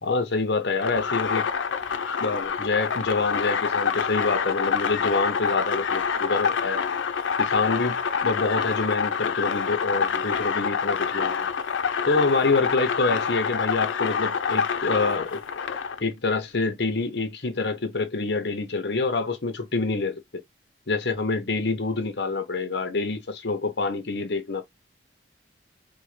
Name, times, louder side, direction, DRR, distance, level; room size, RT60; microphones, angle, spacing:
voice 1, 0.0-1.5 2.2-6.8 7.4-11.5 12.1-15.4 16.0-20.4 20.9-24.6, left 3 dB, 65° left, 0.9 m, -26 dB
sound 1, 0.8-16.0, left 6 dB, 85° left, 0.5 m, -27 dB
4.5 x 2.2 x 3.2 m
head